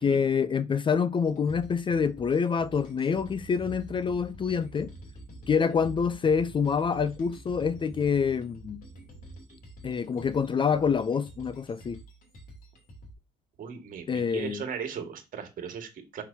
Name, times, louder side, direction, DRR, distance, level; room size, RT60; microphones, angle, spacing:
voice 1, 0.0-4.9 5.5-8.8 9.8-12.0 14.1-14.6, left 6 dB, 30° left, 0.5 m, -26 dB
sound 1, 1.2-13.1, right 1 dB, 55° left, 3.0 m, -47 dB
voice 2, 13.6-16.2, right 7 dB, 55° right, 1.9 m, -37 dB
6.1 x 5.9 x 2.8 m
cardioid pair, 110°, 17 cm